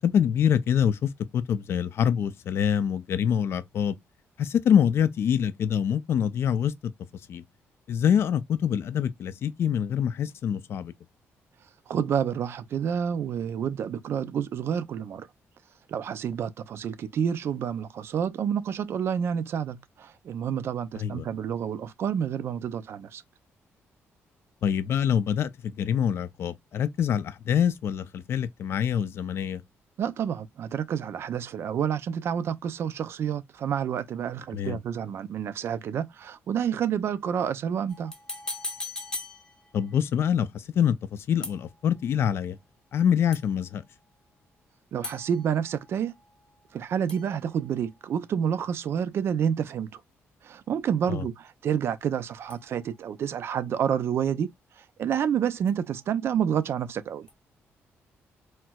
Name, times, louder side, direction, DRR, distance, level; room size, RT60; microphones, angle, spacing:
voice 1, 0.0-4.0 4.4-6.7 7.3-7.4 7.9-10.9 21.0-21.2 24.6-29.6 34.5-34.8 39.7-41.0 41.3-42.6 42.9-43.8 51.1-51.2, left 8 dB, 55° left, 0.4 m, -25 dB
voice 2, 11.9-15.3 15.9-23.2 30.0-38.1 44.9-46.1 46.7-50.0 50.4-57.3, right 8 dB, 55° right, 0.4 m, -29 dB
sound 1, 37.9-40.0 41.4-42.1 43.3-43.8 45.0-46.8 47.1-48.3 52.5-53.3 55.7-56.3 57.3-57.4, left 2 dB, 15° left, 0.7 m, -41 dB
4.2 x 2.0 x 2.2 m
cardioid pair, 135°, 5 cm